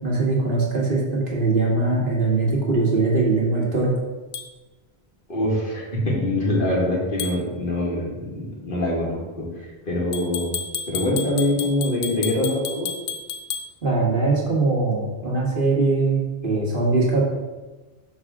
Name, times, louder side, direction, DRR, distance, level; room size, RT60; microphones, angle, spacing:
voice 1, 0.0-3.9 13.8-17.2, right 3 dB, 55° right, -4 dB, 1.8 m, -21 dB
sound 1, 4.3-4.5 7.2-7.4 10.1-13.7, left 6 dB, 80° left, 0.9 m, -31 dB
voice 2, 5.3-10.5 10.9-12.9, left 1 dB, 55° left, -3 dB, 1.8 m, -24 dB
5.8 x 3.6 x 5.9 m, 1.2 s
omnidirectional pair, 1.0 m